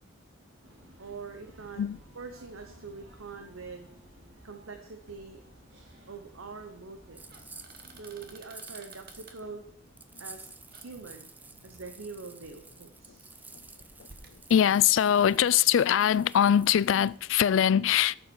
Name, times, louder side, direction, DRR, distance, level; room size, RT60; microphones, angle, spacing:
sound 1, 0.6-8.3, equal, 70° right, 2.6 m, -56 dB
voice 1, 1.0-1.8 2.1-3.9 4.4-5.4 6.1-7.5 8.0-9.7 10.2-11.3 11.6-13.3, right 4 dB, 85° right, 1.0 m, -44 dB
sound 2, 4.9-14.4, right 3 dB, 50° right, 1.3 m, -57 dB
sound 3, 7.2-9.4 10.0-17.5, right 3 dB, 10° right, 0.4 m, -51 dB
voice 2, 14.5-18.2, left 9 dB, 70° left, 0.3 m, -22 dB
13.5 x 7.2 x 4.6 m
head